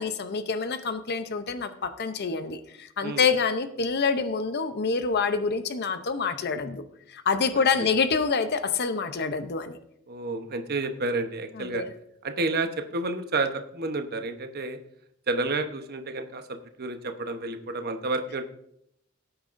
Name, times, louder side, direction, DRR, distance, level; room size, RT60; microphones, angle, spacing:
voice 1, 0.0-6.8 7.1-9.8 11.6-11.9, left 5 dB, 50° left, 10 dB, 0.6 m, -27 dB
voice 2, 10.1-11.8 12.2-14.8 15.3-18.5, right 3 dB, 50° right, 7 dB, 0.9 m, -30 dB
17.0 x 8.8 x 2.6 m, 0.73 s
head